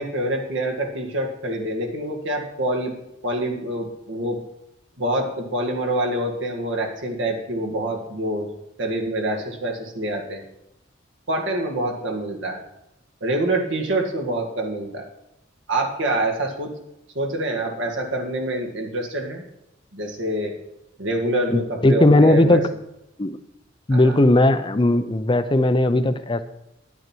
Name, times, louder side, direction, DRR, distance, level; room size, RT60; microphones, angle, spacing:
voice 1, 0.0-2.9 3.2-4.4 5.0-8.5 8.8-10.4 11.3-12.6 13.2-15.0 15.7-16.7 17.2-19.4 19.9-20.5 21.0-22.6 23.9-24.2, right 1 dB, 65° right, 1 dB, 1.9 m, -26 dB
voice 2, 21.5-22.6 23.2-23.4 23.9-26.4, left 1 dB, 25° left, 11 dB, 0.6 m, -17 dB
10.5 x 9.5 x 4.5 m, 0.87 s
head